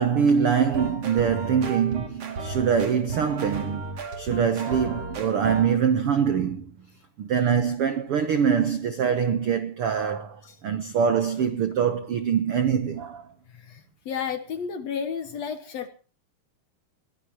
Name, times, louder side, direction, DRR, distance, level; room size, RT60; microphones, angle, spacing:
voice 1, 0.0-3.9 4.2-6.8 7.2-13.2, right 7 dB, 85° right, 1.2 m, -24 dB
sound 1, 0.6-5.7, right 3 dB, 45° right, 3.3 m, -34 dB
voice 2, 13.5-15.9, left 7 dB, 65° left, 1.9 m, -32 dB
22.0 x 17.5 x 3.0 m
omnidirectional pair, 4.2 m